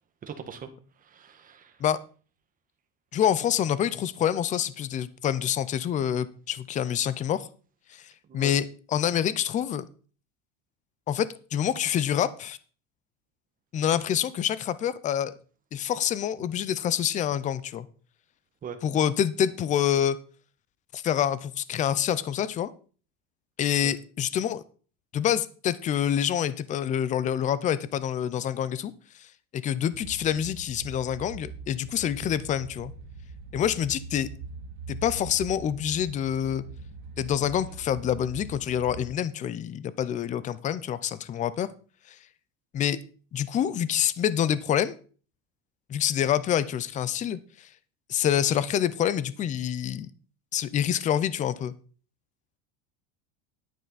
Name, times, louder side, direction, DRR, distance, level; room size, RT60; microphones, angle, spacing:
voice 1, 0.2-0.7 1.0-1.8 8.3-8.5 18.6-18.8 23.8-23.9, right 7 dB, 25° right, 7 dB, 1.4 m, -41 dB
voice 2, 3.1-7.5 7.9-9.8 11.1-12.6 13.7-15.3 15.7-17.9 18.8-20.2 20.9-22.7 23.6-24.6 25.1-28.9 29.2-29.3 29.5-32.9 33.5-34.3 34.9-36.6 37.2-41.7 42.1-42.2 42.7-43.0 43.3-45.0 45.9-47.7 48.1-50.1 50.5-51.7, left 10 dB, 25° left, 17 dB, 0.5 m, -27 dB
sound 1, 29.9-39.1, right 4 dB, 90° right, 1.9 m, -42 dB
10.5 x 9.0 x 4.0 m, 0.40 s
cardioid pair, 155°, 32 cm